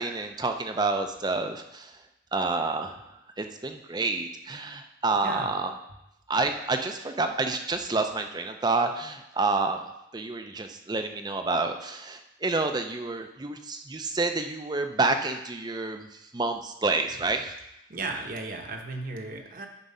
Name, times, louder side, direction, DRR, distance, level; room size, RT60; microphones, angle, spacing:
voice 1, 0.0-1.9 2.3-3.0 3.4-5.7 6.3-9.8 10.1-17.5, right 3 dB, 20° right, 6 dB, 0.5 m, -28 dB
voice 2, 5.2-5.5 17.9-19.7, right 3 dB, 45° right, 3 dB, 1.0 m, -35 dB
10.0 x 4.6 x 5.4 m, 0.88 s
head